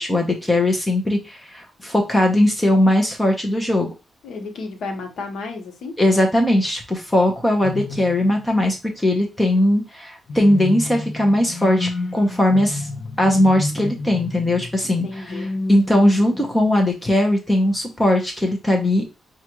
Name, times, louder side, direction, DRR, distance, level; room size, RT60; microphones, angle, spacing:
voice 1, 0.0-3.9 6.0-12.9 13.2-19.0, left 1 dB, 10° left, 0.8 m, -19 dB
voice 2, 4.2-6.0 14.8-15.5, left 3 dB, 80° left, 1.1 m, -32 dB
sound 1, 7.6-8.7 10.3-16.8, left 2 dB, 40° left, 0.5 m, -30 dB
5.8 x 2.5 x 3.0 m
wide cardioid pair, 135°, 0 cm